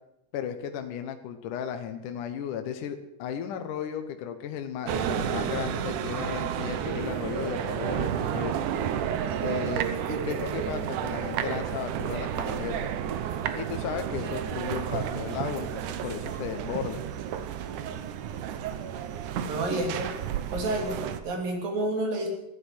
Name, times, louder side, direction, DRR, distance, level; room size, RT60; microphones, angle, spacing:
voice 1, 0.3-8.6 9.4-12.9 13.6-17.1, left 8 dB, 70° left, 6 dB, 2.4 m, -35 dB
sound 1, 4.9-21.2, right 9 dB, 70° right, 2.3 m, -31 dB
voice 2, 19.4-20.1 20.5-22.3, right 1 dB, 90° right, 2 dB, 4.6 m, -29 dB
14.5 x 10.5 x 7.8 m, 0.88 s
omnidirectional pair, 3.9 m